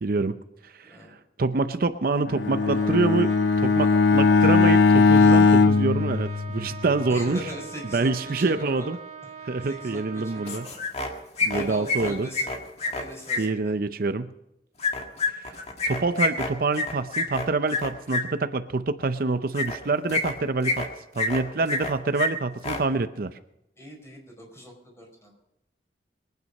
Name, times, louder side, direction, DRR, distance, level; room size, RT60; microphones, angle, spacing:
voice 1, 0.0-1.0 1.4-7.4 7.9-9.0 9.4-10.6 11.4-12.3 13.4-14.3 15.4-20.9 21.1-23.4, right 3 dB, 55° right, 11 dB, 0.5 m, -26 dB
voice 2, 0.8-1.1 7.1-8.9 9.6-10.8 11.5-12.5 12.8-13.7 23.8-25.3, equal, 15° left, 0 dB, 4.7 m, -41 dB
Bowed string instrument, 2.3-6.9, left 4 dB, 80° left, 0.6 m, -19 dB
Trumpet, 2.6-10.8, right 6 dB, 35° right, 1.9 m, -42 dB
sound 1, 10.5-11.1 11.4-13.4 14.8-18.2 19.5-19.8 20.1-20.9 21.2-21.9 22.2-22.3 22.6-22.8, left 3 dB, 35° left, 1.9 m, -27 dB
22.5 x 9.4 x 5.3 m, 0.87 s
head